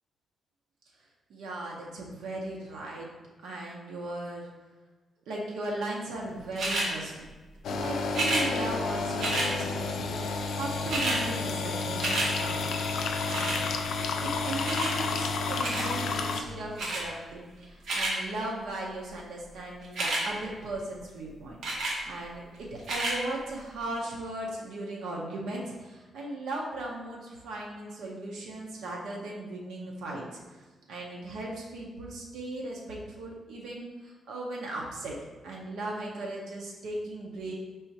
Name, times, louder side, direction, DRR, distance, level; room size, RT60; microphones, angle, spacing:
voice 1, 1.3-3.1 3.4-4.5 5.3-7.1 7.7-12.8 13.2-13.7 14.2-21.6 22.1-30.4 30.9-35.1 35.4-37.5, right 2 dB, 85° right, -2 dB, 0.8 m, -37 dB
sound 1, 6.6-6.9 8.1-8.5 9.2-9.5 10.4-10.5 10.7-11.2 11.6-12.3 13.3-13.6 14.7-14.9 15.6-15.9 16.8-17.0 17.6-18.1 19.8-20.2 21.6-22.0 22.8-23.2 23.8-23.9, right 2 dB, 55° right, 1.0 m, -29 dB
sound 2, 7.6-16.4, left 4 dB, 65° left, 0.4 m, -31 dB
5.3 x 3.5 x 2.8 m, 1.3 s
wide cardioid pair, 175°, 0 cm